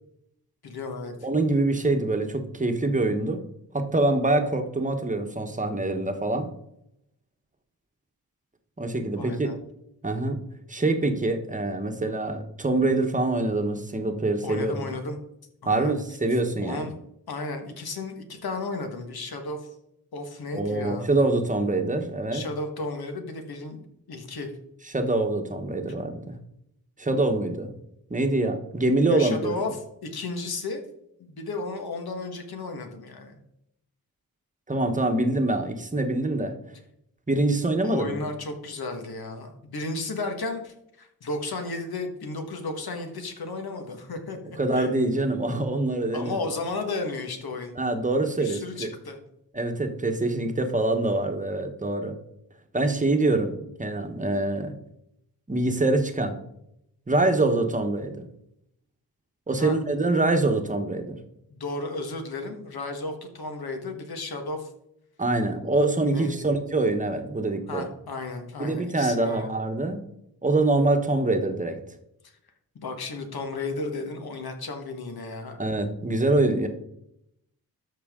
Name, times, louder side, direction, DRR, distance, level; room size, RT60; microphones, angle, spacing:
voice 1, 0.6-1.1 9.1-9.6 14.4-15.2 15.6-16.0 16.6-16.9 17.3-19.6 20.1-21.1 22.3-23.8 24.1-24.5 29.1-29.8 30.0-30.8 31.2-33.4 37.8-44.9 46.1-47.7 48.4-49.2 59.6-59.8 61.5-64.7 66.0-66.5 67.7-69.5 72.7-75.6, left 3 dB, 80° left, 5 dB, 1.5 m, -34 dB
voice 2, 1.2-3.4 3.7-6.5 8.8-9.5 10.0-10.4 10.7-14.9 15.7-16.8 20.5-22.4 24.8-26.4 27.0-27.7 28.1-29.5 34.7-36.5 37.3-38.2 44.6-46.4 47.8-48.9 49.5-52.2 52.7-54.7 55.5-56.4 57.1-58.3 59.5-61.2 65.2-67.9 68.6-70.0 70.4-71.8 75.6-76.7, right 2 dB, 20° right, 6 dB, 1.1 m, -25 dB
13.0 x 5.7 x 3.7 m, 0.79 s
wide cardioid pair, 110°, 37 cm